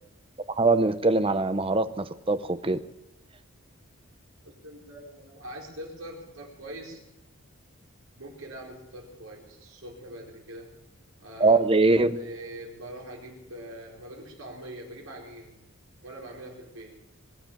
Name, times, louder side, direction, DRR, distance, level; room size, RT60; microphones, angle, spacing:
voice 1, 0.5-2.8 11.4-12.2, right 3 dB, 25° right, 12 dB, 0.7 m, -22 dB
voice 2, 4.4-7.0 8.2-10.7 11.2-11.6 11.9-15.7 16.0-17.0, right 1 dB, 80° right, -1 dB, 4.6 m, -43 dB
21.5 x 8.0 x 7.3 m, 0.94 s
head